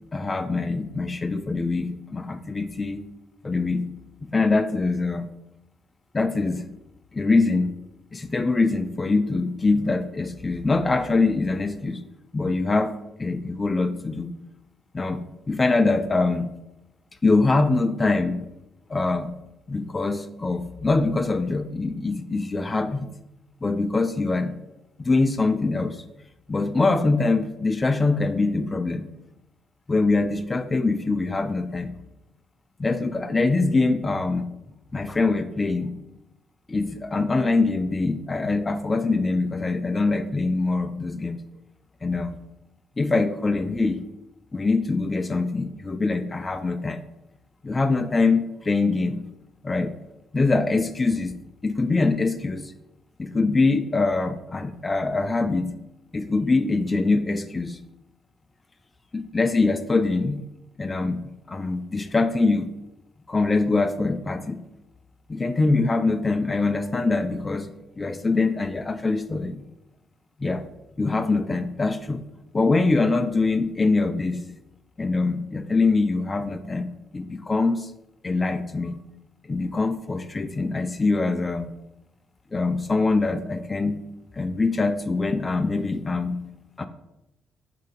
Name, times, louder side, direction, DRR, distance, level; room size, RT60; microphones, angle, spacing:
voice 1, 0.1-3.0 3.4-3.8 4.3-5.3 6.1-6.6 7.1-7.7 8.1-12.0 12.3-12.9 13.2-14.3 14.9-15.2 15.5-16.5 17.2-18.5 18.9-19.3 19.7-23.1 23.6-24.5 25.0-26.0 26.5-29.1 29.9-31.9 32.8-34.5 34.9-35.9 36.7-41.4 42.0-42.4 43.0-44.0 44.5-47.0 47.6-49.2 49.6-49.9 50.3-51.4 51.6-52.7 53.2-55.7 56.1-57.8 59.1-60.4 60.8-61.2 61.5-62.7 63.3-64.6 65.3-67.7 68.0-69.6 70.4-70.6 71.0-72.2 72.5-74.4 75.0-76.9 77.1-77.9 78.2-79.0 79.5-81.7 82.5-84.0 84.4-86.4 86.8-86.9, left 3 dB, 25° left, 10 dB, 0.4 m, -23 dB
7.6 x 2.8 x 5.0 m, 0.93 s
cardioid pair, 90°, 0 cm